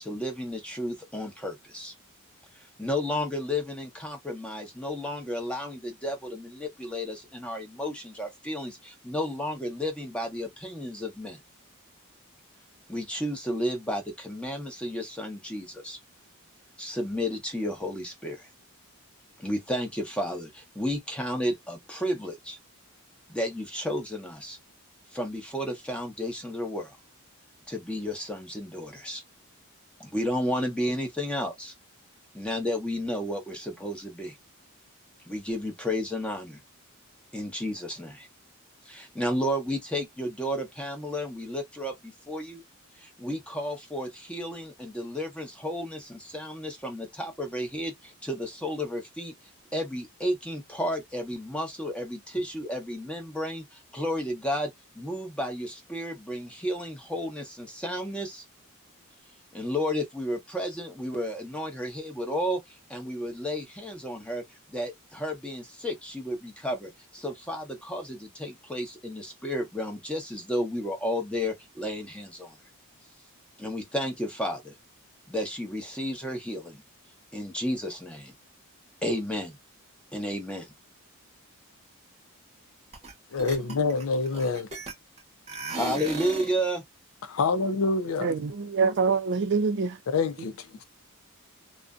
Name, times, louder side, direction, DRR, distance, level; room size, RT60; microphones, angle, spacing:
voice 1, 0.0-1.9 2.5-11.4 12.9-16.0 16.8-18.5 19.4-22.6 23.3-24.6 25.1-27.0 27.7-29.2 30.0-31.7 32.3-34.4 35.3-36.6 37.3-38.3 38.8-42.6 43.0-49.3 49.7-58.4 59.5-64.4 64.7-72.6 73.6-74.7 75.3-76.8 77.3-78.3 79.0-79.6 80.1-80.7 85.8-86.8, equal, 5° left, 0.8 m, -32 dB
sound 1, 82.9-83.1 83.4-85.2 85.5-86.6, right 2 dB, 30° right, 0.9 m, -36 dB
voice 2, 83.3-84.7 87.4-88.3 90.1-90.8, left 4 dB, 65° left, 0.4 m, -26 dB
voice 3, 88.2-90.0, right 5 dB, 50° right, 0.4 m, -25 dB
2.5 x 2.1 x 2.4 m
head